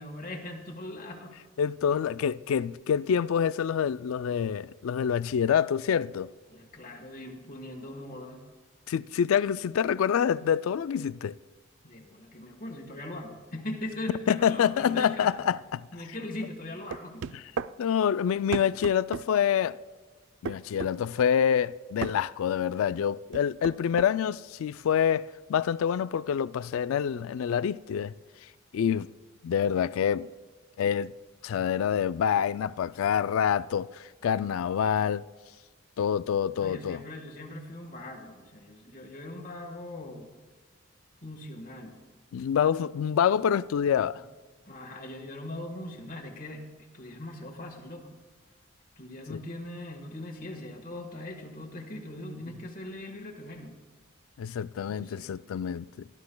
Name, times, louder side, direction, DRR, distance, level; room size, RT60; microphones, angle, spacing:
voice 1, 0.0-1.4 6.5-8.4 11.8-15.3 15.9-17.2 36.5-40.3 41.2-42.0 44.7-48.1 49.0-53.7 54.9-55.3, left 1 dB, 40° left, 1.4 m, -40 dB
voice 2, 1.6-6.3 8.9-11.3 14.3-15.8 17.3-17.4 17.8-19.8 20.4-28.1 28.7-29.1 29.4-30.3 30.8-31.1 31.4-35.3 36.0-37.0 42.3-44.2 49.3-49.4 54.4-56.1, left 8 dB, 80° left, 0.3 m, -26 dB
sound 1, 16.9-17.7 18.5-19.3 20.5-20.9 22.0-22.2 23.3-24.1, right 5 dB, 60° right, 0.3 m, -34 dB
24.0 x 11.5 x 2.3 m
head